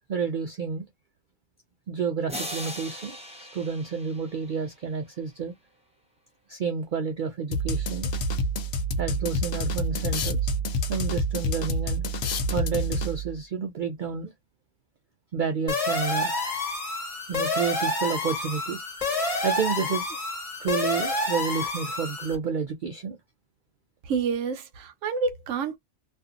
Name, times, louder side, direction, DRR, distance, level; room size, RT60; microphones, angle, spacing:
voice 1, 0.1-0.8 1.9-5.5 6.5-8.1 9.0-10.5 10.9-12.0 12.5-14.3 15.3-16.4 17.3-18.8 19.4-20.2 20.6-23.2, right 6 dB, 60° right, 0.5 m, -30 dB
sound 1, 2.3-5.2, equal, 10° right, 0.4 m, -39 dB
sound 2, 7.5-13.4, equal, 65° left, 0.7 m, -28 dB
sound 3, 15.7-22.3, left 2 dB, 30° left, 1.3 m, -28 dB
voice 2, 24.0-25.8, right 5 dB, 80° right, 1.0 m, -28 dB
2.6 x 2.6 x 2.4 m
omnidirectional pair, 1.3 m